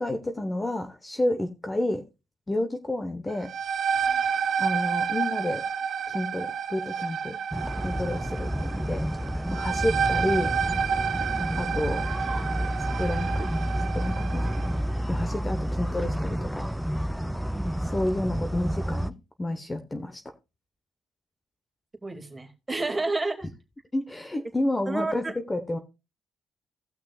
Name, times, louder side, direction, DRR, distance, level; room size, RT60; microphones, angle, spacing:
voice 1, 0.0-2.0 2.5-3.5 4.6-5.6 6.1-7.4 7.8-9.1 9.5-10.5 11.6-12.1 13.0-13.5 13.9-14.7 15.1-16.7 17.8-20.2 23.9-25.8, left 1 dB, 20° left, 6 dB, 1.1 m, -30 dB
sound 1, 3.3-14.8, right 7 dB, 60° right, 1.0 m, -30 dB
sound 2, 7.5-19.1, equal, ahead, 0.6 m, -30 dB
voice 2, 22.0-23.5 24.9-25.3, right 3 dB, 20° right, 4 dB, 2.4 m, -30 dB
17.5 x 6.1 x 2.4 m, 0.26 s
cardioid pair, 90°, 0 cm